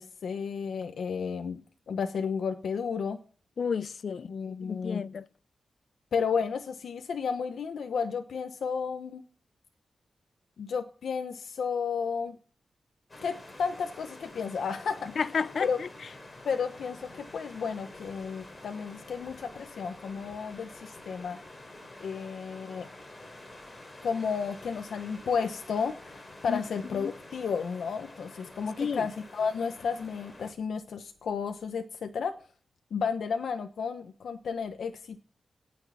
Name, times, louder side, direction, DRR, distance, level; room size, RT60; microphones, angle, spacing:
voice 1, 0.0-1.6 1.9-3.2 4.3-5.0 6.1-9.2 10.6-12.4 13.2-15.2 15.6-15.8 16.4-21.4 22.0-22.9 24.0-32.4 32.9-35.2, left 6 dB, 90° left, 1.0 m, -32 dB
voice 2, 3.6-4.3 4.6-5.3 15.2-15.9 26.5-26.6 26.9-27.1 28.8-29.1, left 6 dB, 60° left, 0.6 m, -31 dB
sound 1, 13.1-30.5, left 1 dB, 25° left, 3.7 m, -48 dB
18.0 x 6.6 x 7.2 m
wide cardioid pair, 135°, 0 cm